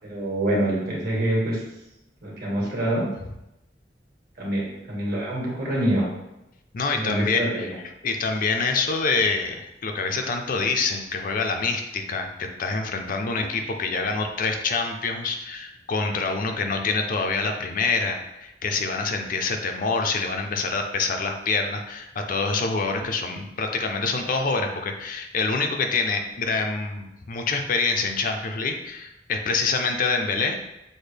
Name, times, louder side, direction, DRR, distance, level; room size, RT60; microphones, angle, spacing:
voice 1, 0.0-1.6 2.2-3.1 4.4-6.1 6.9-7.8, right 1 dB, 60° right, -4 dB, 1.4 m, -25 dB
voice 2, 6.7-7.7 8.0-30.6, left 4 dB, 50° left, 4 dB, 0.5 m, -26 dB
6.2 x 2.1 x 3.3 m, 0.90 s
head